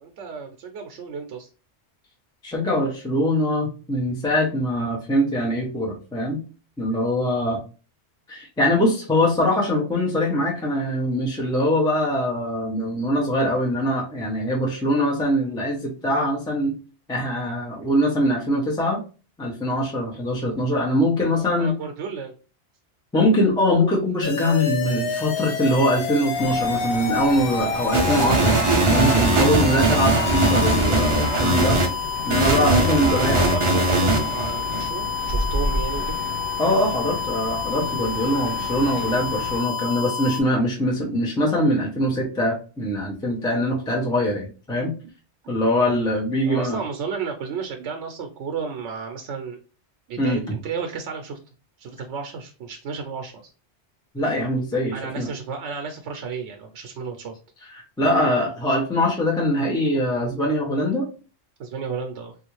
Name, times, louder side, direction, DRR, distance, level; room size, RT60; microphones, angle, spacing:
voice 1, 0.0-1.5 21.3-22.3 33.0-36.1 46.5-49.6 50.1-51.4 51.8-53.5 54.9-57.4 61.6-62.3, right 5 dB, 80° right, 4 dB, 0.9 m, -33 dB
voice 2, 2.4-6.4 6.8-7.6 8.3-16.7 17.1-19.0 19.4-21.7 23.1-28.6 28.9-31.8 32.2-33.4 36.6-44.9 45.5-46.8 50.2-50.6 54.1-55.3 57.7-61.1, left 1 dB, 5° left, -3 dB, 0.5 m, -23 dB
sound 1, 24.2-40.4, left 6 dB, 60° left, 0.7 m, -29 dB
sound 2, 26.3-39.6, left 1 dB, 75° left, 1.2 m, -33 dB
sound 3, 27.9-31.9 32.3-34.8, right 2 dB, 45° right, 0.4 m, -20 dB
3.5 x 2.4 x 3.0 m, 0.35 s
omnidirectional pair, 1.2 m